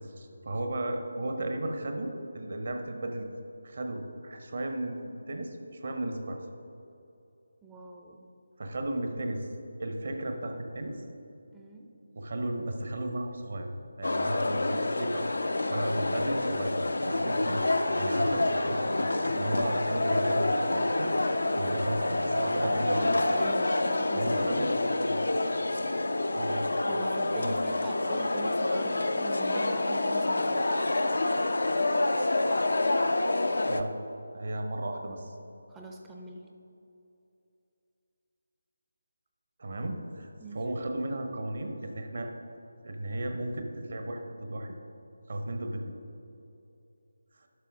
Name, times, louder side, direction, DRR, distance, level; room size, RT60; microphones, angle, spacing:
voice 1, 0.2-3.3 3.6-6.4 8.6-9.5 9.8-11.0 12.1-13.7 14.0-16.8 17.1-23.1 24.1-25.2 26.3-26.6 27.3-27.6 33.7-34.0 34.3-35.3 39.6-42.3 42.8-44.8 45.3-45.9, right 1 dB, 50° right, 4 dB, 1.0 m, -35 dB
voice 2, 7.6-8.2 11.5-11.9 22.6-24.5 26.9-30.7 35.0-35.3 35.7-36.4 40.4-40.6, right 2 dB, 10° right, -1 dB, 0.5 m, -42 dB
sound 1, 14.0-33.8, left 2 dB, 65° left, 0.5 m, -28 dB
sound 2, 15.7-24.3, right 1 dB, 85° right, 0.4 m, -42 dB
11.5 x 5.8 x 3.6 m, 2.7 s
figure-of-eight pair, 155°, 0 cm